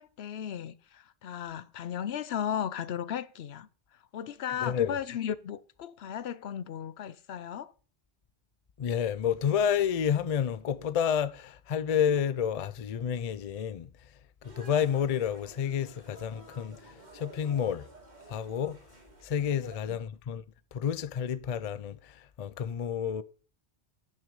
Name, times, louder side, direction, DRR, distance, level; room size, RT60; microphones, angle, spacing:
voice 1, 0.0-3.7 4.1-7.7 19.6-20.0, left 9 dB, 70° left, 0.9 m, -36 dB
voice 2, 4.6-5.0 8.8-13.9 14.6-17.8 18.3-18.8 19.2-20.4 20.7-23.2, left 8 dB, 45° left, 0.5 m, -30 dB
sound 1, 14.4-19.8, right 2 dB, 40° right, 2.6 m, -52 dB
10.5 x 6.1 x 5.3 m
omnidirectional pair, 1.1 m